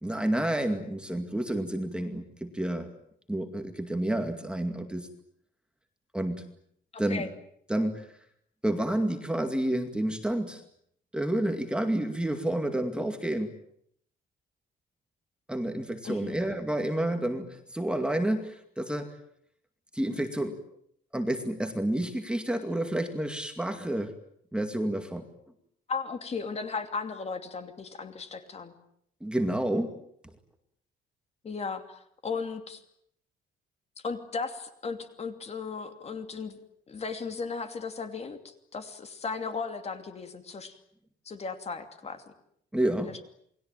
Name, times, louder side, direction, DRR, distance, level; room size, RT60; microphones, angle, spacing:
voice 1, 0.0-2.9 3.3-5.1 6.1-6.5 7.0-7.3 7.7-8.1 8.6-10.6 11.1-13.5 15.5-19.1 19.9-20.6 21.1-24.1 24.5-25.2 29.2-29.9 42.7-43.1, right 1 dB, 5° right, 6 dB, 2.2 m, -29 dB
voice 2, 6.9-7.3 16.0-16.4 25.9-28.7 31.4-32.8 34.0-36.6 36.9-40.8 41.2-42.2 43.0-43.2, left 4 dB, 30° left, 7 dB, 2.8 m, -36 dB
28.5 x 21.0 x 9.1 m, 0.71 s
cardioid pair, 175°, 20 cm